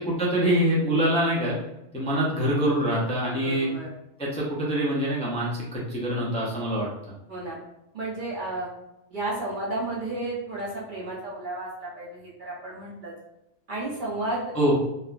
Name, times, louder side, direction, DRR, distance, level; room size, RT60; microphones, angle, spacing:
voice 1, 0.0-1.6 1.9-3.7 4.2-6.9 14.5-14.7, equal, 10° left, -6 dB, 0.3 m, -24 dB
voice 2, 3.3-3.9 7.3-7.6 7.9-8.7 9.1-13.1 13.7-14.5, right 2 dB, 55° right, -5 dB, 0.6 m, -32 dB
3.0 x 2.1 x 2.4 m, 0.88 s
omnidirectional pair, 1.2 m